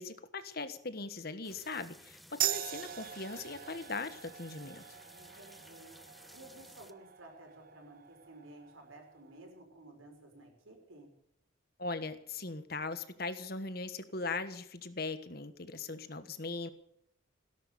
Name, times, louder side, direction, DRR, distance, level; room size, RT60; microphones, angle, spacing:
voice 1, 0.0-5.0 11.8-16.7, left 3 dB, 50° left, 11 dB, 1.4 m, -40 dB
sound 1, 1.4-6.9, equal, ahead, 0.8 m, -56 dB
sound 2, 2.4-9.5, right 13 dB, 45° right, 0.5 m, -41 dB
voice 2, 5.1-5.9 6.3-11.1, right 1 dB, 90° right, 3 dB, 5.7 m, -54 dB
17.5 x 11.0 x 6.9 m, 0.74 s
head